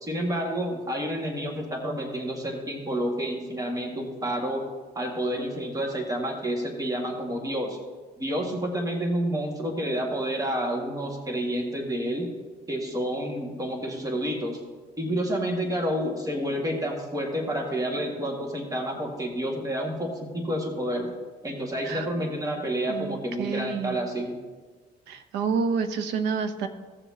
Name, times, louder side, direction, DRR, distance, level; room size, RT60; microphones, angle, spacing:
voice 1, 0.0-4.7 4.9-7.8 8.2-12.3 12.7-14.6 15.0-21.1 21.4-24.3, equal, 20° right, 1 dB, 1.8 m, -29 dB
voice 2, 22.9-24.0 25.1-26.7, right 5 dB, 90° right, 9 dB, 0.9 m, -29 dB
16.5 x 7.0 x 2.8 m, 1.4 s
cardioid pair, 110°, 17 cm